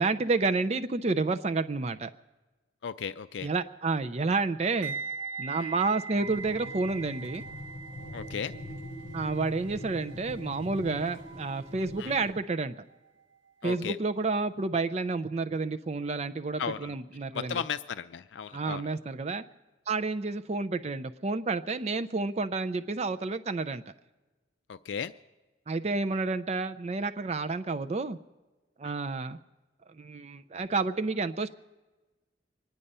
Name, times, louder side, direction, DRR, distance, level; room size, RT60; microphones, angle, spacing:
voice 1, 0.0-2.1 3.4-4.9 5.4-7.4 9.1-12.8 13.6-17.6 18.5-19.4 19.9-23.8 25.7-28.2 28.8-29.4 30.0-31.5, right 3 dB, 35° right, 11 dB, 0.4 m, -30 dB
voice 2, 2.8-3.5 5.6-5.7 8.1-8.5 12.0-12.1 13.6-14.0 16.6-16.9 17.3-18.8 24.7-25.1 28.8-28.9, left 7 dB, 70° left, 12 dB, 0.4 m, -35 dB
sound 1, 4.8-13.8 14.0-14.3, right 4 dB, 75° right, 0.8 m, -42 dB
sound 2, 6.1-12.3, left 1 dB, 15° left, 7.3 m, -43 dB
24.5 x 10.0 x 5.4 m, 1.2 s
head